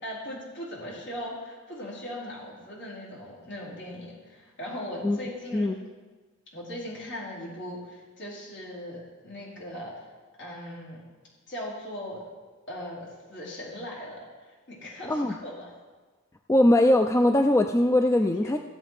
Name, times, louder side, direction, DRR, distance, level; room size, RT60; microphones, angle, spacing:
voice 1, 0.0-5.8 6.5-10.1 10.4-11.0 11.5-12.2 12.7-15.7 18.2-18.6, left 1 dB, 55° left, -5 dB, 4.3 m, -39 dB
voice 2, 16.5-18.6, left 1 dB, 15° left, 6 dB, 0.4 m, -21 dB
15.5 x 7.8 x 4.8 m, 1.3 s
head